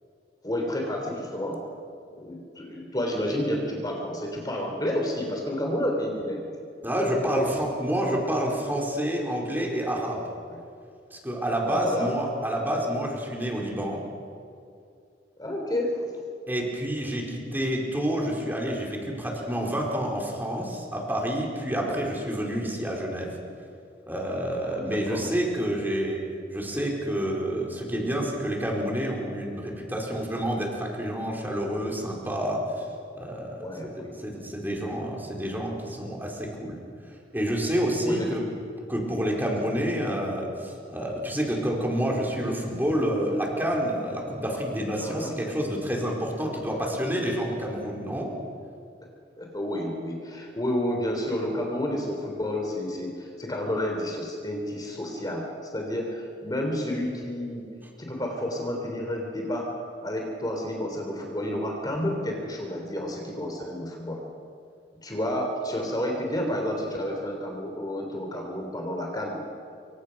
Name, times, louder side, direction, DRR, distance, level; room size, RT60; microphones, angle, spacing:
voice 1, 0.4-1.6 2.2-6.4 7.3-7.5 10.5-10.6 11.7-12.1 15.4-16.1 21.8-22.1 24.6-25.3 33.6-34.1 38.0-38.3 44.5-44.6 45.0-45.3 49.4-57.7 58.0-59.7 60.0-64.2 65.0-69.4, left 1 dB, 25° left, 1 dB, 3.4 m, -30 dB
voice 2, 6.8-10.2 11.1-14.0 16.5-23.3 24.1-26.2 26.5-32.6 33.1-36.8 37.3-38.4 38.9-48.3, equal, 10° right, -2 dB, 4.7 m, -28 dB
27.5 x 24.5 x 6.0 m, 2.3 s
head